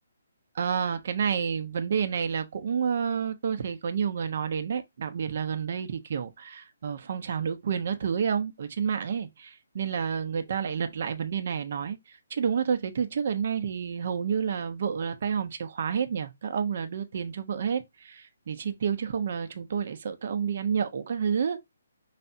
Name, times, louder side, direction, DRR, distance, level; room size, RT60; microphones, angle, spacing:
voice 1, 0.5-12.0 12.3-21.7, right 7 dB, 55° right, 1.0 m, -29 dB
5.8 x 3.2 x 2.7 m
figure-of-eight pair, 145°, 0 cm